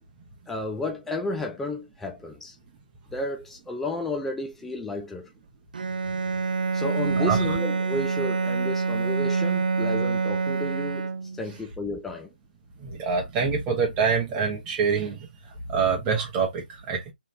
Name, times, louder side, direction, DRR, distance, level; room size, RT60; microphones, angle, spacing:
voice 1, 0.5-2.6 3.1-5.3 6.7-11.1 11.4-12.3, left 2 dB, 5° left, 0.4 m, -32 dB
Bowed string instrument, 5.7-11.5, right 4 dB, 65° right, 0.5 m, -26 dB
voice 2, 12.8-15.2 15.7-17.1, right 5 dB, 20° right, 1.3 m, -25 dB
3.8 x 3.5 x 2.8 m
figure-of-eight pair, 145°, 5 cm